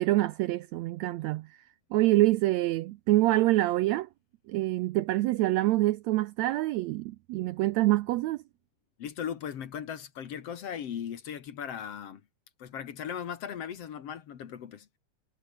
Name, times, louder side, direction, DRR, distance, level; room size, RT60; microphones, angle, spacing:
voice 1, 0.0-1.6 1.9-4.1 4.5-8.4, right 17 dB, 80° right, 1.6 m, -26 dB
voice 2, 9.0-12.2 12.6-14.9, left 8 dB, 55° left, 2.4 m, -38 dB
omnidirectional pair, 3.6 m